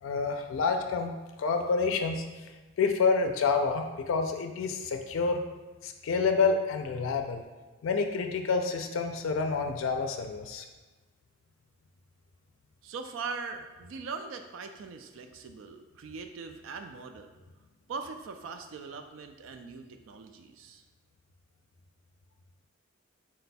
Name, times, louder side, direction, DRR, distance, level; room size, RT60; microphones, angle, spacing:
voice 1, 0.0-2.5 2.8-5.4 5.8-7.4 7.8-10.7, left 4 dB, 90° left, 5 dB, 0.4 m, -28 dB
voice 2, 12.8-17.3 17.9-20.8, right 4 dB, 80° right, 6 dB, 0.4 m, -41 dB
4.2 x 2.2 x 4.1 m, 1.3 s
head